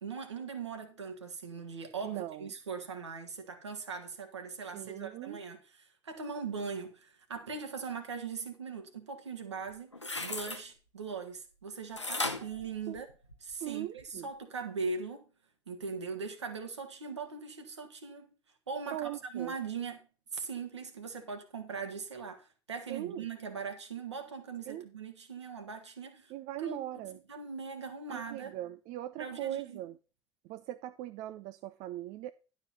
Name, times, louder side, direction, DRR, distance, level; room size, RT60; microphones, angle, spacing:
voice 1, 0.0-13.1 13.4-15.2 15.7-18.3 18.7-20.1 20.3-26.3 26.6-28.6 29.2-29.8, right 5 dB, 80° right, 1.7 m, -40 dB
voice 2, 2.0-2.5 4.7-5.4 12.9-13.0 13.6-14.3 18.9-19.5 22.9-23.2 24.7-24.9 26.3-27.2 28.1-30.0 30.4-32.3, right 14 dB, 50° right, 0.5 m, -40 dB
sound 1, 9.7-10.6 12.0-13.5 14.0-14.1, left 2 dB, 90° left, 0.8 m, -36 dB
11.5 x 5.1 x 5.7 m
figure-of-eight pair, 60°, 15 cm